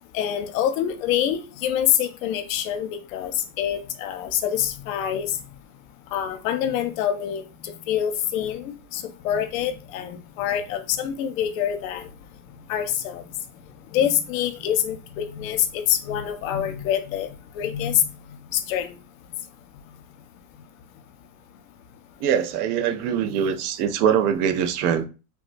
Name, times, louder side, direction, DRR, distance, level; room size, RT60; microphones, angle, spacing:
voice 1, 0.1-5.4 6.1-12.1 12.7-13.2 13.9-19.0, left 10 dB, 65° left, 0.6 m, -26 dB
voice 2, 22.2-25.0, right 8 dB, 85° right, 0.6 m, -23 dB
3.5 x 2.1 x 2.5 m
supercardioid pair, 175°, 44 cm